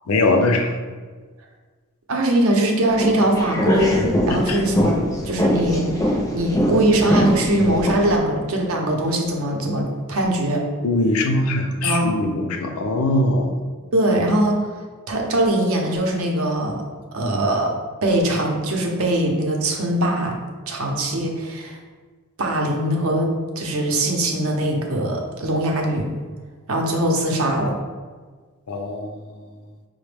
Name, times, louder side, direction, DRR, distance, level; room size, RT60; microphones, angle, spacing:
voice 1, 0.1-0.7 4.5-4.6 10.8-13.6 28.7-29.1, left 2 dB, 85° left, 4 dB, 0.5 m, -21 dB
voice 2, 2.1-10.6 11.8-12.1 13.9-14.7 15.1-16.8 17.1-17.7 18.0-20.4 20.7-21.8 22.4-23.3 23.6-26.1 26.7-27.7, right 1 dB, 75° right, 1 dB, 0.7 m, -21 dB
sound 1, 2.9-8.2, equal, 15° left, 0.4 m, -22 dB
4.9 x 2.1 x 3.3 m, 1.5 s
head